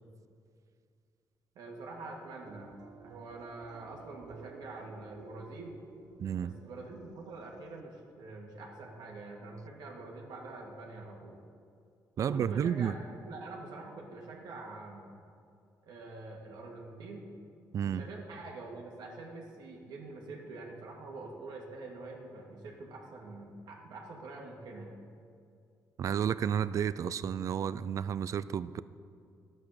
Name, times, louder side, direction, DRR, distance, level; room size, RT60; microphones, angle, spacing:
voice 1, 1.6-5.8 6.4-11.4 12.2-15.0 15.8-17.3 17.8-25.0, right 2 dB, 85° right, -1 dB, 2.1 m, -45 dB
sound 1, 2.5-7.8, right 6 dB, 65° right, 0.8 m, -54 dB
voice 2, 6.2-6.5 12.2-13.0 17.7-18.0 26.0-28.8, right 8 dB, 50° right, 16 dB, 0.4 m, -31 dB
12.5 x 8.7 x 6.5 m, 2.4 s
cardioid pair, 140°, 7 cm